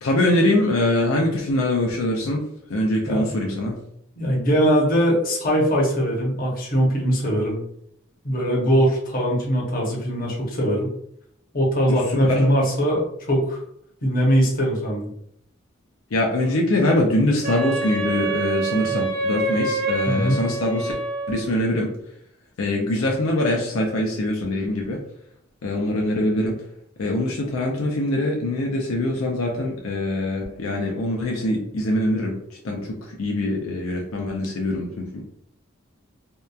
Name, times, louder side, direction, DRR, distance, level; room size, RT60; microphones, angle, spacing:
voice 1, 0.0-2.4 2.7-3.7 11.9-12.5 16.1-20.9 21.3-21.9 22.6-25.0 25.6-26.5 27.0-32.4 32.6-32.8 33.2-35.2, left 1 dB, 85° left, 0 dB, 0.5 m, -23 dB
voice 2, 4.2-7.6 8.2-10.9 11.5-13.6 14.0-15.1 20.1-20.4, equal, 45° left, -3 dB, 0.8 m, -21 dB
Wind instrument woodwind instrument, 17.4-21.5, right 3 dB, 50° right, 0.6 m, -26 dB
2.8 x 2.2 x 2.3 m, 0.71 s
head